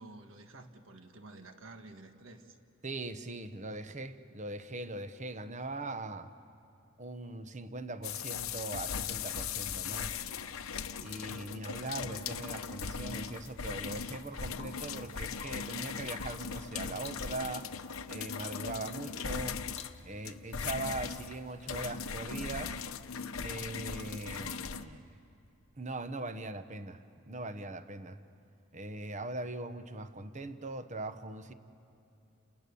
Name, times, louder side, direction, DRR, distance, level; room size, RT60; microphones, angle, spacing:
voice 1, 0.0-2.6, right 2 dB, 65° right, 6 dB, 1.7 m, -51 dB
voice 2, 2.8-6.3 7.0-10.3 11.0-17.7 18.1-19.6 20.0-22.8 23.4-25.0 25.8-28.2 28.7-31.5, right 2 dB, 35° right, 10 dB, 1.0 m, -41 dB
sound 1, 8.0-24.8, left 6 dB, 80° left, 0.9 m, -39 dB
Rain / Water tap faucet / Drip, 13.6-14.0 14.5-15.0 15.3-15.8 16.2-16.6 17.0-17.3 17.9-18.1 18.8-19.1 19.4-19.5 19.7-20.3 20.6-21.0 21.6-22.0 24.4-24.8 26.7-26.8, left 6 dB, 30° left, 0.9 m, -54 dB
30.0 x 28.0 x 7.0 m, 2.6 s
head